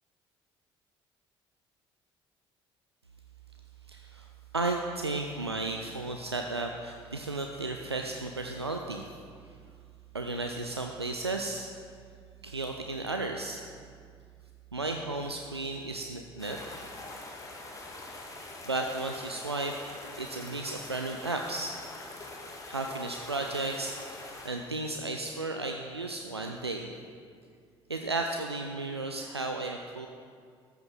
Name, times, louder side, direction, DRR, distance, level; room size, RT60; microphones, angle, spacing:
voice 1, 3.9-4.3 4.5-9.1 10.1-11.7 12.4-13.6 14.7-16.6 18.7-19.8 20.2-21.8 22.7-26.9 27.9-30.1, right 2 dB, 90° right, 3 dB, 0.4 m, -34 dB
sound 1, 16.4-24.5, left 2 dB, 25° left, 2.0 m, -44 dB
13.5 x 5.8 x 6.0 m, 2.1 s
figure-of-eight pair, 50°, 13 cm